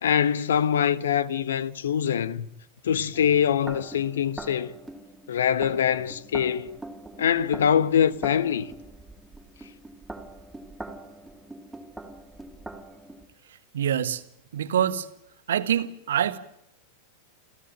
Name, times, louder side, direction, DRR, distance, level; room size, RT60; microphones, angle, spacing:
voice 1, 0.0-2.5 2.8-4.7 5.3-6.8 7.2-8.7, left 8 dB, 65° left, 1.1 m, -24 dB
sound 1, 3.1-13.3, right 2 dB, 5° right, 2.8 m, -43 dB
voice 2, 13.7-14.2 14.5-15.1 15.5-16.4, right 9 dB, 60° right, 1.5 m, -25 dB
28.5 x 16.0 x 9.1 m
figure-of-eight pair, 90°, 0 cm